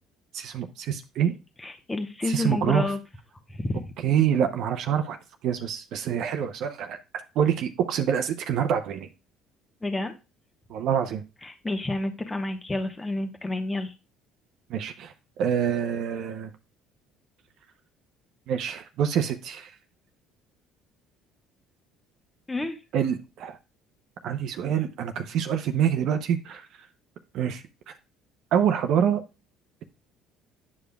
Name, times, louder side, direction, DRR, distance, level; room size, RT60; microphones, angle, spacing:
voice 1, 0.3-1.3 2.3-2.9 4.0-5.2 5.4-7.0 7.4-9.1 10.7-11.2 14.7-15.1 15.4-16.5 18.5-19.7 22.9-23.6 24.2-26.7 27.3-27.9 28.5-29.2, right 8 dB, 65° right, 6 dB, 0.6 m, -26 dB
voice 2, 1.6-3.0 3.5-3.9 9.8-10.1 11.4-13.9 22.5-22.8, left 2 dB, 15° left, 6 dB, 1.0 m, -29 dB
9.5 x 5.1 x 2.2 m, 0.28 s
hypercardioid pair, 70°, 0 cm